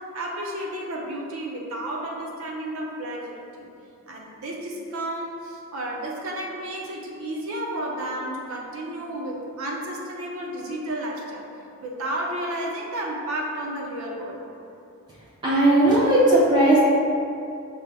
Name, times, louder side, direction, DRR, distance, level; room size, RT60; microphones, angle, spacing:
voice 1, 0.0-3.7 4.1-11.5 11.8-14.4, right 1 dB, 70° right, -2 dB, 0.6 m, -32 dB
voice 2, 15.4-16.8, right 1 dB, 20° right, -8 dB, 0.5 m, -17 dB
5.3 x 2.0 x 3.3 m, 2.5 s
head